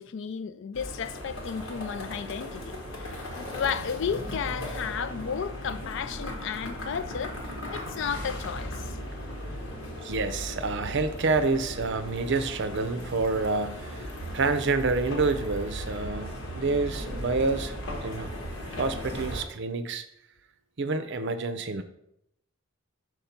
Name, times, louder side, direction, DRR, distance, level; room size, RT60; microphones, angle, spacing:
voice 1, 0.0-8.9, left 7 dB, 65° left, 0.4 m, -33 dB
sound 1, 0.7-19.4, equal, 80° left, 1.6 m, -37 dB
voice 2, 10.0-18.3 18.7-20.0 20.8-21.8, right 3 dB, 60° right, 0.6 m, -28 dB
5.3 x 4.6 x 5.8 m
head